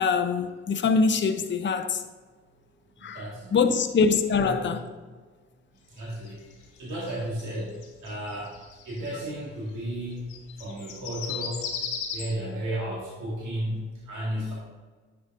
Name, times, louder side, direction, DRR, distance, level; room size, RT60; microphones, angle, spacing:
voice 1, 0.0-2.0 3.0-3.2 3.5-4.8, left 5 dB, 40° left, 0.7 m, -23 dB
voice 2, 3.0-3.7 4.3-4.7 5.9-8.5 8.8-11.7 12.1-14.5, right 1 dB, 75° right, 2.1 m, -33 dB
sound 1, 6.0-9.2 10.1-12.3, left 6 dB, 80° left, 1.0 m, -36 dB
9.8 x 6.8 x 2.6 m
hypercardioid pair, 45°, 31 cm